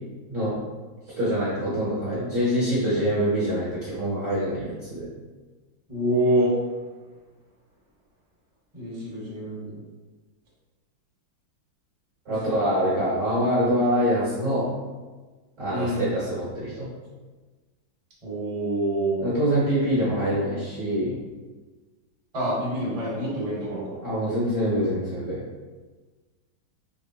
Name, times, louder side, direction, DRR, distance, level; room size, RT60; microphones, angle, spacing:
voice 1, 0.3-0.6 1.2-5.1 12.2-14.7 15.6-16.9 19.2-21.2 24.0-25.4, equal, 45° right, -9 dB, 1.1 m, -25 dB
voice 2, 5.9-6.5 8.7-9.8 15.7-16.0 18.2-19.2 22.3-24.0, right 1 dB, 25° right, -7 dB, 1.0 m, -26 dB
3.7 x 3.1 x 2.7 m, 1.3 s
omnidirectional pair, 2.2 m